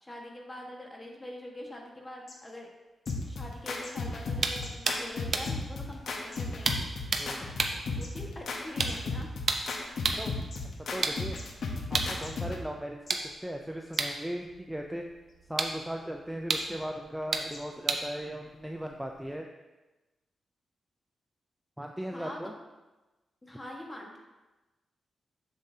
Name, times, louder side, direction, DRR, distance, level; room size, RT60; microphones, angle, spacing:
voice 1, 0.0-2.7 3.3-7.5 7.9-9.3 22.1-22.4 23.4-24.2, left 1 dB, 20° left, 0 dB, 1.4 m, -44 dB
sound 1, 2.3-2.4 3.0-3.1 3.8-3.9 4.6-4.7 5.4-5.5 6.3-6.4 7.2-7.3 8.0-8.1 8.9-9.0 9.7-9.8 10.5-10.6 11.4-11.5 12.2-12.3 13.1-13.2 13.9-14.0 15.3-15.4 16.6-16.7 17.5-17.6, left 3 dB, 40° left, 1.2 m, -47 dB
sound 2, 3.1-12.7, left 3 dB, 70° left, 0.9 m, -35 dB
sound 3, 4.4-10.3 10.9-19.3, right 4 dB, 55° right, 0.7 m, -35 dB
voice 2, 10.9-11.4 11.9-15.0 15.5-19.5 21.8-22.5, equal, 5° right, 2 dB, 0.4 m, -37 dB
7.2 x 7.2 x 2.7 m, 1.1 s
cardioid pair, 105°, 0 cm